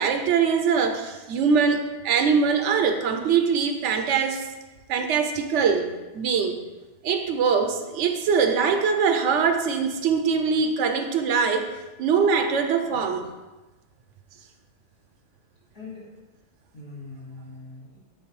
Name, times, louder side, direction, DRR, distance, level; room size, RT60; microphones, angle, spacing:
voice 1, 0.0-4.4 4.9-6.6 7.0-11.7 12.0-13.3, right 6 dB, 80° right, 6 dB, 0.9 m, -22 dB
voice 2, 15.7-16.2 16.7-18.0, left 3 dB, 85° left, -8 dB, 2.6 m, -41 dB
8.9 x 3.3 x 3.2 m, 1.1 s
omnidirectional pair, 1.2 m